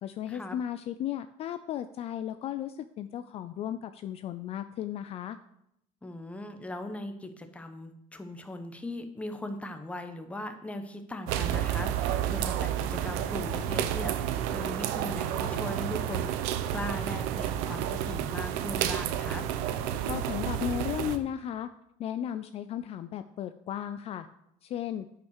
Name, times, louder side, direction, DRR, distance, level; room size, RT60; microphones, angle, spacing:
voice 1, 0.0-5.4 20.1-21.7 22.0-24.3 24.6-25.1, left 10 dB, 45° left, 10 dB, 0.4 m, -35 dB
voice 2, 6.0-19.4, left 1 dB, 10° left, 7 dB, 1.0 m, -39 dB
Droplets from roof gutter - Ariccia, 11.3-21.2, right 10 dB, 90° right, 0.8 m, -30 dB
9.7 x 5.7 x 6.4 m, 0.78 s
cardioid pair, 140°, 15 cm